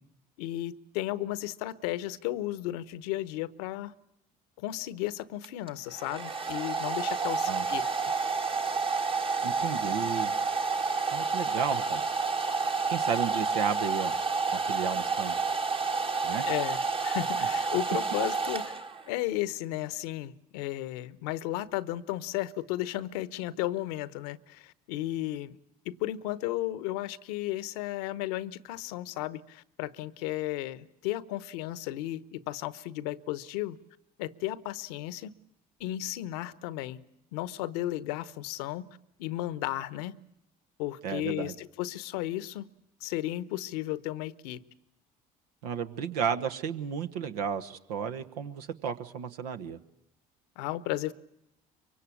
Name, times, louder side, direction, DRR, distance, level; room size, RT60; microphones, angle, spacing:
voice 1, 0.4-3.9 4.6-8.1 16.5-18.7 19.1-25.6 25.8-33.8 34.2-35.3 35.8-37.0 37.3-38.9 39.2-40.2 40.8-42.7 43.0-44.6 50.6-51.1, left 15 dB, 75° left, 1.0 m, -34 dB
Domestic sounds home sounds, 5.4-19.2, right 4 dB, 25° right, 1.4 m, -30 dB
voice 2, 9.4-10.3 11.1-12.0 12.9-14.1 14.5-15.4 16.2-16.4 41.0-41.5 45.6-49.8, right 7 dB, 80° right, 1.4 m, -33 dB
24.0 x 24.0 x 8.6 m
hypercardioid pair, 60°, 20 cm